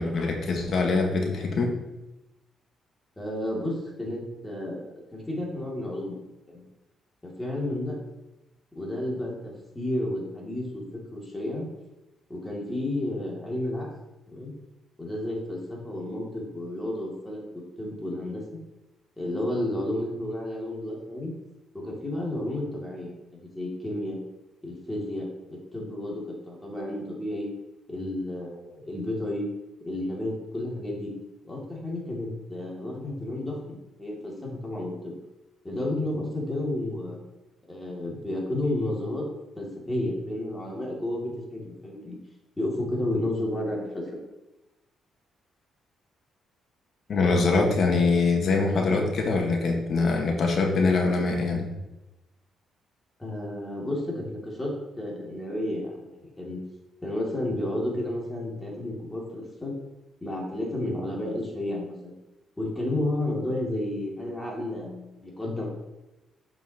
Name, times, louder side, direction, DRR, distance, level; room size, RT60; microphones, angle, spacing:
voice 1, 0.0-1.7 47.1-51.7, left 3 dB, 55° left, 2 dB, 1.4 m, -23 dB
voice 2, 3.2-6.2 6.5-6.6 7.2-8.0 8.7-11.7 12.3-13.9 14.3-14.5 15.0-18.6 19.2-21.3 21.7-23.1 23.5-24.2 24.6-27.5 27.9-29.5 29.8-31.1 31.4-35.1 35.6-37.2 37.7-39.3 39.6-42.2 42.6-44.2 53.2-56.6 57.0-59.7 60.2-62.1 62.6-65.7, left 1 dB, 15° left, -3 dB, 2.4 m, -32 dB
7.2 x 5.7 x 2.9 m, 0.99 s
cardioid pair, 90°, 0 cm